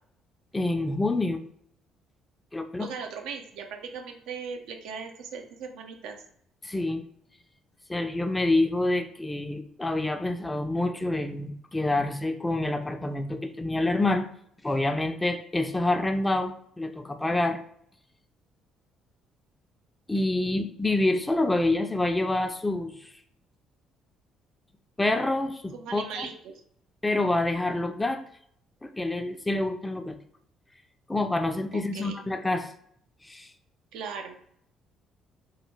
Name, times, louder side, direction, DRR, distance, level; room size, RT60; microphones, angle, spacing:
voice 1, 0.5-1.4 2.5-2.9 6.6-7.1 7.9-14.3 14.6-17.6 20.1-23.1 25.0-26.3 27.0-28.2 28.8-30.2 31.1-32.7 33.2-33.5, left 2 dB, 15° left, 7 dB, 0.4 m, -27 dB
voice 2, 2.8-6.2 25.7-26.5 31.7-32.2 33.9-34.3, right 5 dB, 65° right, 3 dB, 0.5 m, -38 dB
3.0 x 2.2 x 3.3 m, 0.65 s
figure-of-eight pair, 45°, 0 cm